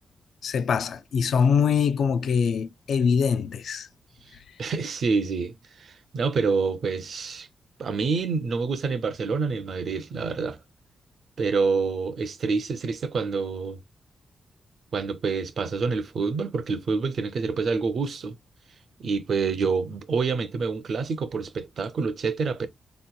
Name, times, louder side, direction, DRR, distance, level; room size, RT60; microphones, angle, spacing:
voice 1, 0.4-3.9, left 6 dB, 65° left, 0.3 m, -23 dB
voice 2, 4.6-7.5 7.8-10.6 11.4-13.8 14.9-18.4 19.0-22.7, right 4 dB, 50° right, 0.5 m, -27 dB
4.2 x 2.8 x 2.2 m
wide cardioid pair, 180°, 0 cm